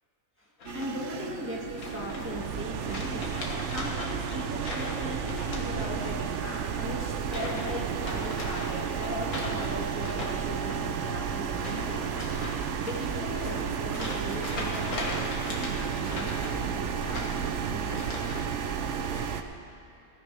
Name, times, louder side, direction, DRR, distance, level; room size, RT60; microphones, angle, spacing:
sound 1, 0.6-1.2 1.8-2.5 2.8-6.2 6.5-6.8 7.2-7.7 8.0-18.5 18.8-19.2, left 2 dB, 80° left, 2.1 m, -40 dB
sound 2, 0.6-19.4, right 7 dB, 60° right, 0.9 m, -32 dB
voice 1, 0.7-18.0, equal, 10° right, -5 dB, 1.9 m, -38 dB
20.0 x 13.0 x 3.4 m, 2.8 s
omnidirectional pair, 1.5 m